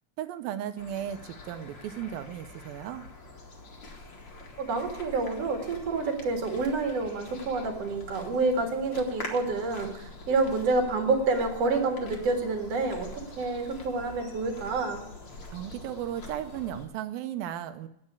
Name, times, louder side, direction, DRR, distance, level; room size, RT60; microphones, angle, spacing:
voice 1, 0.2-3.1 15.5-17.9, right 10 dB, 80° right, 10 dB, 2.4 m, -35 dB
sound 1, 0.8-16.9, left 2 dB, 40° left, 1.9 m, -45 dB
voice 2, 4.6-13.1 13.4-15.0, right 3 dB, 45° right, 3 dB, 2.7 m, -28 dB
10.5 x 8.6 x 9.5 m, 0.79 s
omnidirectional pair, 4.3 m